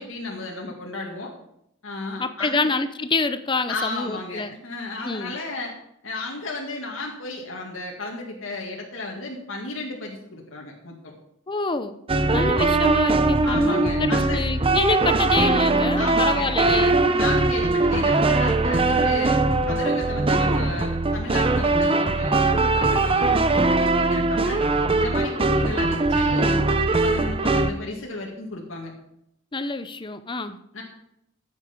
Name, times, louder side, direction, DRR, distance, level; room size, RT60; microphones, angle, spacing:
voice 1, 0.0-1.3 1.8-2.7 3.7-5.7 6.0-11.1 12.1-12.5 13.4-14.4 15.9-16.5 16.9-19.3 19.7-24.6 24.9-28.9 30.7-30.8, left 2 dB, 70° left, -1 dB, 2.2 m, -33 dB
voice 2, 2.2-4.5 5.0-5.4 11.5-12.0 12.3-17.0 29.5-30.6, left 3 dB, 25° left, 11 dB, 0.7 m, -26 dB
sound 1, 12.1-27.7, right 2 dB, 25° right, 0.8 m, -21 dB
14.0 x 8.3 x 5.3 m, 0.77 s
head